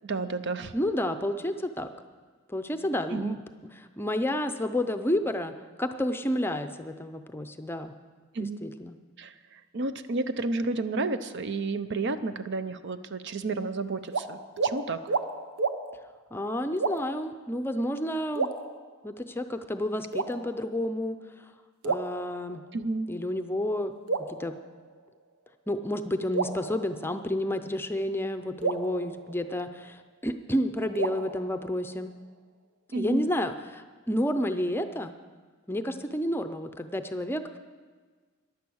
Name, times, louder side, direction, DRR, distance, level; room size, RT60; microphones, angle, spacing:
voice 1, 0.0-0.7 3.1-3.4 8.3-8.6 9.2-15.2 22.7-23.1 32.9-33.2, right 3 dB, 55° right, 11 dB, 0.7 m, -31 dB
voice 2, 0.7-1.9 2.5-3.4 4.0-7.9 8.4-8.9 16.3-18.5 19.0-21.2 21.8-22.6 23.1-23.9 24.4-24.6 25.7-32.1 32.9-35.1 35.7-37.6, left 1 dB, 10° left, 8 dB, 0.6 m, -30 dB
sound 1, 14.1-14.3 14.6-14.8 15.1-15.3 15.6-15.8 16.8-17.2 18.4-19.2 20.1-20.8 21.8-22.8 24.1-25.2 26.3-27.5 28.6-30.0 31.0-32.2, right 4 dB, 85° right, 0.9 m, -32 dB
15.5 x 11.0 x 6.4 m, 1.5 s
head